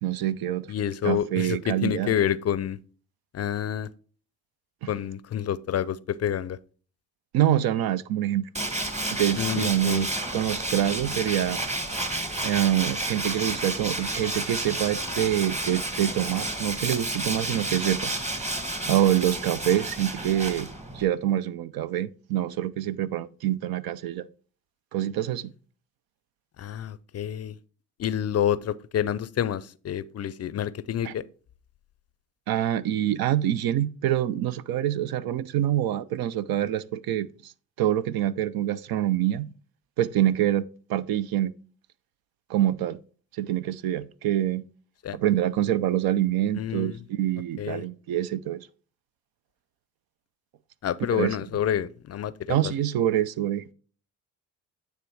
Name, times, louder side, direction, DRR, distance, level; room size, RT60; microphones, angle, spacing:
voice 1, 0.0-0.7 1.0-2.1 4.8-4.9 7.3-8.5 9.1-11.6 12.4-18.1 18.8-20.7 20.9-24.3 24.9-25.5 31.0-31.1 32.5-37.5 37.8-39.5 40.0-40.6 40.9-41.5 42.5-43.0 43.4-44.6 45.1-48.7 51.1-51.4 52.5-53.6, right 12 dB, 65° right, 0.6 m, -26 dB
voice 2, 0.7-2.8 3.3-3.9 4.9-6.6 9.4-10.1 26.6-27.5 28.0-31.2 45.0-45.2 46.5-47.0 47.6-47.8 50.8-52.7, left 10 dB, 40° left, 0.5 m, -28 dB
Tools, 8.5-21.0, right 1 dB, 15° right, 1.4 m, -31 dB
9.3 x 3.4 x 4.7 m
supercardioid pair, 75°, 39 cm